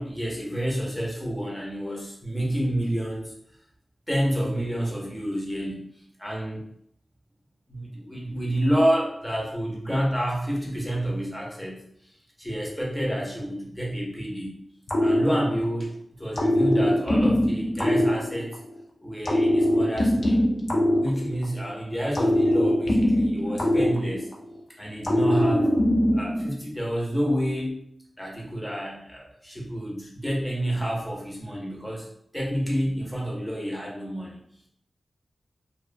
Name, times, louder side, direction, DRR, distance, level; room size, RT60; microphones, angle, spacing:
voice 1, 0.0-3.3 4.1-5.9 6.2-6.6 7.7-12.1 12.4-14.6 15.0-18.6 19.0-20.5 21.0-24.3 24.8-25.7 26.1-27.8 28.2-32.1 32.3-34.4, equal, 5° left, -4 dB, 0.6 m, -29 dB
sound 1, 14.9-15.9 16.3-18.8 19.2-21.7 22.1-24.6 25.0-26.5, left 1 dB, 55° left, 0.4 m, -22 dB
2.4 x 2.1 x 2.5 m, 0.69 s
wide cardioid pair, 115°, 0 cm